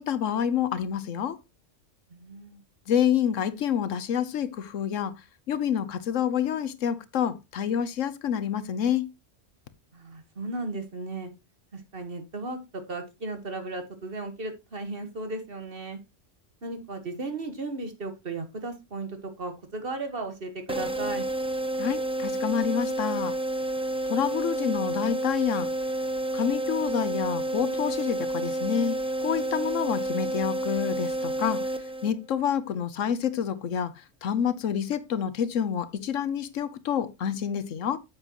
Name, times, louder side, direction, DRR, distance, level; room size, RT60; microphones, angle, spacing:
voice 1, 0.0-1.4 2.9-5.1 5.5-9.1 21.8-23.3 24.1-25.7 26.3-31.7 32.0-38.0, left 8 dB, 90° left, 1.2 m, -28 dB
voice 2, 2.1-2.6 9.9-11.3 11.7-16.0 16.6-21.2, right 2 dB, 50° right, 1.7 m, -35 dB
sound 1, 20.7-32.4, right 1 dB, 5° right, 0.8 m, -30 dB
9.0 x 7.4 x 3.0 m
omnidirectional pair, 1.3 m